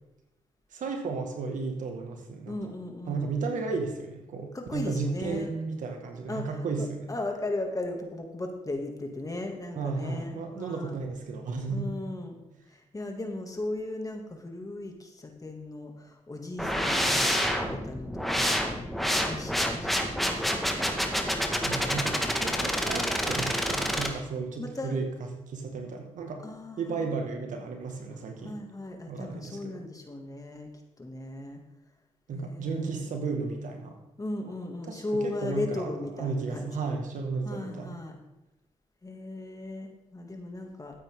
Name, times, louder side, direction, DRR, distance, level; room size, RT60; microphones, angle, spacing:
voice 1, 0.7-2.6 3.1-7.1 9.8-11.9 21.6-25.1 25.5-26.4 26.8-28.6 29.1-29.8 32.3-34.0 34.9-35.9 36.2-38.0, right 4 dB, 80° right, 3 dB, 1.9 m, -34 dB
voice 2, 2.5-3.3 4.5-5.5 6.3-11.0 11.7-12.4 12.7-20.7 24.6-25.0 26.4-27.1 28.4-30.7 31.0-31.6 32.3-33.2 34.2-36.8 37.4-38.2 39.0-41.0, left 2 dB, 25° left, 3 dB, 2.4 m, -37 dB
sound 1, 16.6-24.1, equal, ahead, 1.7 m, -28 dB
13.0 x 8.9 x 3.8 m, 0.92 s
cardioid pair, 60°, 13 cm